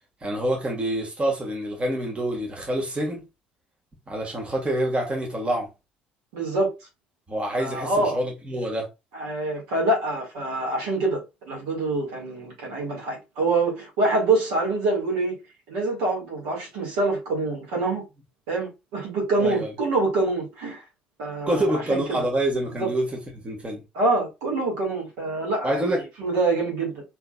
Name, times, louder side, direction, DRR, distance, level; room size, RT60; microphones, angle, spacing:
voice 1, 0.2-3.2 4.1-5.7 7.3-8.9 19.4-19.7 21.5-23.8 25.6-26.0, right 1 dB, 25° right, 1.8 m, -26 dB
voice 2, 6.3-6.7 7.6-8.2 9.1-11.2 11.5-15.4 15.7-18.0 18.5-20.8 21.2-22.2 22.8-22.9 23.9-25.8 26.2-27.0, right 2 dB, 70° right, 2.0 m, -25 dB
4.4 x 3.7 x 2.4 m
figure-of-eight pair, 50°, 5 cm